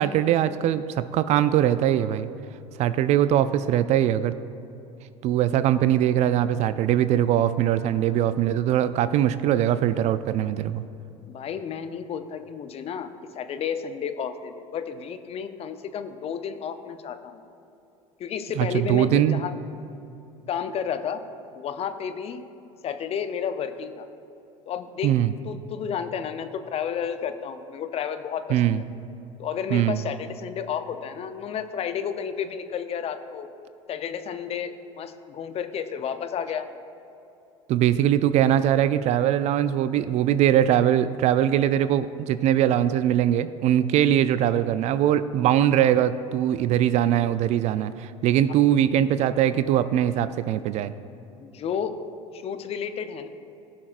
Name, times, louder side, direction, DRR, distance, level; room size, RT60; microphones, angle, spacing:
voice 1, 0.0-2.3 2.8-4.4 5.2-10.8 18.6-19.4 25.0-25.3 28.5-28.8 29.7-30.0 37.7-50.9, right 11 dB, 45° right, 14 dB, 0.4 m, -21 dB
voice 2, 11.3-17.4 18.2-19.5 20.5-21.2 21.5-22.5 22.8-24.1 24.7-25.1 25.4-28.8 29.4-33.5 33.9-36.7 51.4-52.0 52.3-53.3, left 7 dB, 35° left, 9 dB, 0.6 m, -31 dB
17.0 x 6.0 x 2.5 m, 2.9 s
figure-of-eight pair, 70°, 17 cm